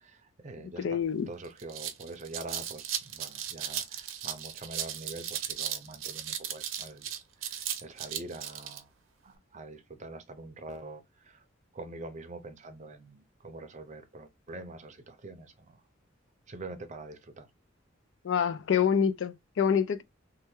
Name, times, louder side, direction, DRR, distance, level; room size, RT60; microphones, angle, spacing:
voice 1, 0.0-1.0 1.3-7.1 7.4-8.9 9.2-11.4 11.7-15.7 16.5-17.5, right 2 dB, 35° right, 0.6 m, -45 dB
voice 2, 0.8-1.3 18.2-20.0, left 7 dB, 70° left, 0.4 m, -26 dB
sound 1, 1.0-1.1 1.4-8.8, right 10 dB, 85° right, 0.6 m, -36 dB
3.3 x 2.2 x 3.0 m
head